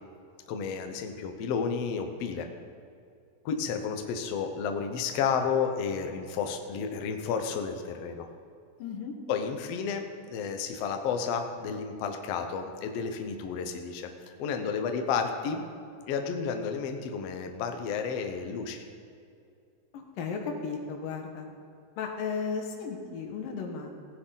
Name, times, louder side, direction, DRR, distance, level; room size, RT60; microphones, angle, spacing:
voice 1, 0.5-2.5 3.4-8.3 9.3-14.1 14.4-15.6 16.1-18.8, left 6 dB, 70° left, 5 dB, 1.6 m, -31 dB
voice 2, 8.8-9.1 19.9-21.5 22.0-23.9, left 5 dB, 85° left, 2 dB, 3.0 m, -35 dB
16.5 x 10.0 x 3.9 m, 2.4 s
omnidirectional pair, 3.9 m